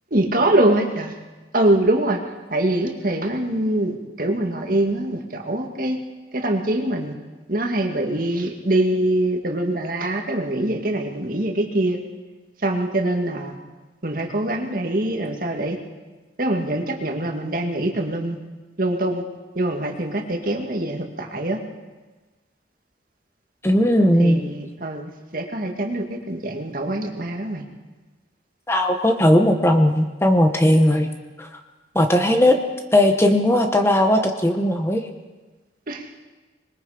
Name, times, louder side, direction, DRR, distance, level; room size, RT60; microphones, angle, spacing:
voice 1, 0.1-1.2 1.5-2.2 2.5-6.0 6.3-7.1 7.5-12.0 12.6-13.6 14.0-15.8 16.4-18.4 18.8-19.2 19.6-21.6 24.2-27.6 35.9-36.0, right 1 dB, 50° right, 3 dB, 2.0 m, -23 dB
voice 2, 23.6-24.4 28.7-31.1 31.4-31.5 31.9-32.6 32.9-35.1, left 1 dB, 15° left, 5 dB, 1.1 m, -17 dB
25.5 x 21.0 x 5.0 m, 1.2 s
head